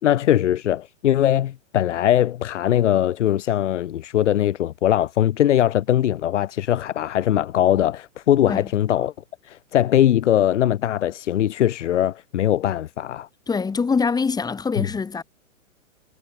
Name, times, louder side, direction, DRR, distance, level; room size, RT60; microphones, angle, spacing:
voice 1, 0.0-9.1 9.4-13.3 14.8-14.9, left 11 dB, 60° left, 4.2 m, -21 dB
voice 2, 13.5-15.2, left 5 dB, 10° left, 6.2 m, -24 dB
hypercardioid pair, 140°, 39 cm